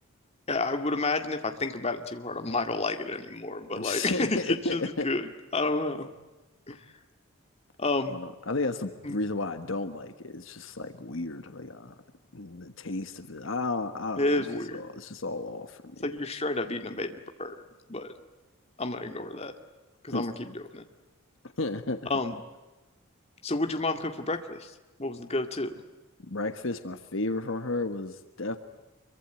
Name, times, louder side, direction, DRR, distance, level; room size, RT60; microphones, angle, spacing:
voice 1, 0.5-6.1 6.7-6.8 7.8-8.2 9.0-9.2 14.2-14.9 16.0-17.6 17.9-18.1 18.8-19.5 20.0-20.8 22.1-22.4 23.4-24.7 25.0-25.8, left 2 dB, 30° left, 6 dB, 2.0 m, -30 dB
voice 2, 3.8-5.1 8.1-11.9 12.3-14.4 14.7-16.0 20.1-20.3 21.6-22.1 26.3-28.6, left 2 dB, 65° left, 9 dB, 1.5 m, -33 dB
25.5 x 23.5 x 9.0 m, 1.1 s
head